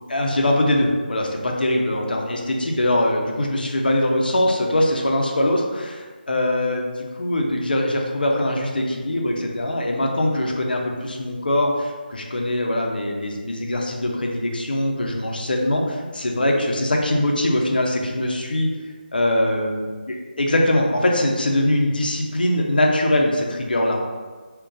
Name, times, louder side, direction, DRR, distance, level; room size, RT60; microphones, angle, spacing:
voice 1, 0.1-18.7 19.1-19.9 20.4-24.0, left 1 dB, 60° left, 1 dB, 0.5 m, -22 dB
2.4 x 2.2 x 3.7 m, 1.4 s
figure-of-eight pair, 155°, 6 cm